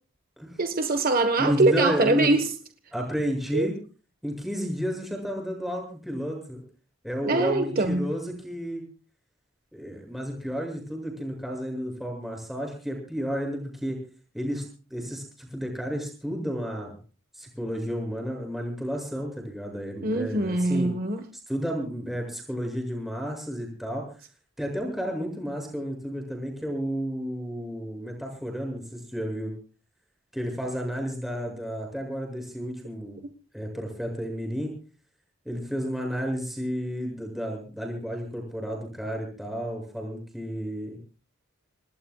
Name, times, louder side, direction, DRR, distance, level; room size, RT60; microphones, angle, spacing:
voice 1, 0.6-2.5 3.5-3.7 7.2-8.1 20.0-21.2, right 2 dB, 45° right, 7 dB, 1.5 m, -23 dB
voice 2, 1.4-2.3 2.9-3.7 4.2-6.6 7.0-8.8 9.7-14.0 14.3-14.6 14.9-17.0 17.3-20.9 21.5-24.0 24.6-29.5 30.3-33.2 33.5-34.7 35.4-41.0, equal, ahead, 1 dB, 7.6 m, -31 dB
27.0 x 20.0 x 2.4 m, 0.38 s
head